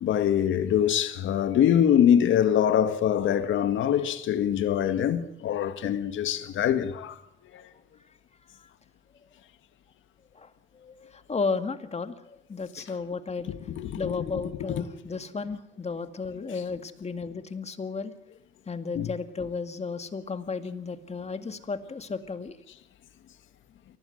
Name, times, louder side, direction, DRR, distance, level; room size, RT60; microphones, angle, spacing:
voice 1, 0.0-7.2 7.5-7.6 13.5-14.4 14.7-14.8 19.0-19.1, left 9 dB, 75° left, 1.9 m, -24 dB
voice 2, 10.4-13.5 14.0-18.1 18.7-22.6, left 4 dB, 35° left, 2.1 m, -34 dB
24.0 x 18.0 x 7.9 m
cardioid pair, 90°, 20 cm